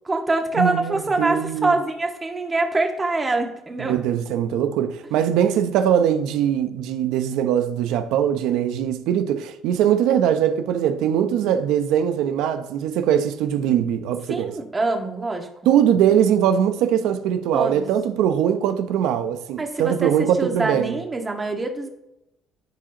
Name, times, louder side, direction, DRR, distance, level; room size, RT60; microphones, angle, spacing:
voice 1, 0.0-4.0 11.2-11.4 14.3-15.5 17.5-17.9 19.6-21.9, right 2 dB, 25° right, 1.8 m, -25 dB
voice 2, 0.6-1.8 3.8-14.5 15.7-20.9, right 9 dB, 85° right, 0.7 m, -21 dB
14.5 x 4.9 x 3.0 m
supercardioid pair, 80°, 0 cm